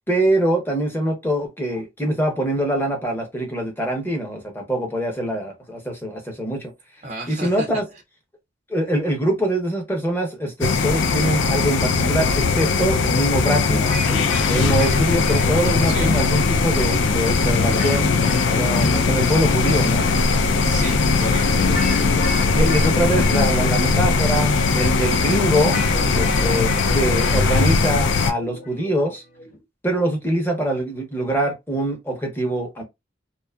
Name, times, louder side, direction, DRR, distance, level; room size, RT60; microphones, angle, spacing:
voice 1, 0.1-6.7 7.3-7.8 8.7-13.8 14.5-18.1 18.6-20.0 22.5-25.8 26.1-29.2 29.8-32.8, right 1 dB, 10° left, 0.7 m, -23 dB
voice 2, 7.0-8.0 15.9-16.1 20.6-21.7, right 2 dB, 35° right, 0.4 m, -33 dB
sound 1, 10.6-28.3, left 4 dB, 75° left, 0.4 m, -19 dB
sound 2, 13.7-29.6, left 2 dB, 45° left, 0.9 m, -35 dB
2.7 x 2.3 x 2.2 m
head